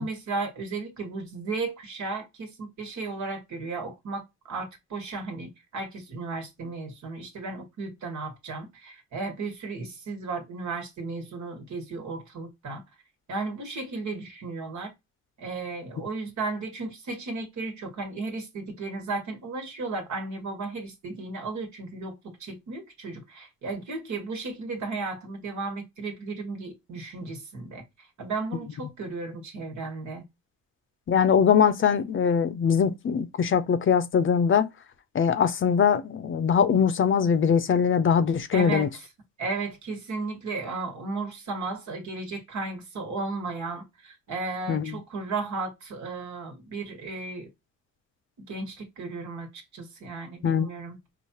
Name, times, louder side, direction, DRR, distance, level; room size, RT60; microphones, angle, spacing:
voice 1, 0.0-4.2 4.5-12.8 13.3-14.9 15.4-27.8 28.2-30.2 38.5-39.1 39.4-47.5 48.5-49.5 49.7-51.0, right 3 dB, 70° right, 1.5 m, -34 dB
voice 2, 31.1-34.7 35.1-38.9 44.7-45.0 50.4-50.7, left 7 dB, 40° left, 0.6 m, -22 dB
4.8 x 2.4 x 2.8 m
cardioid pair, 90°, 30 cm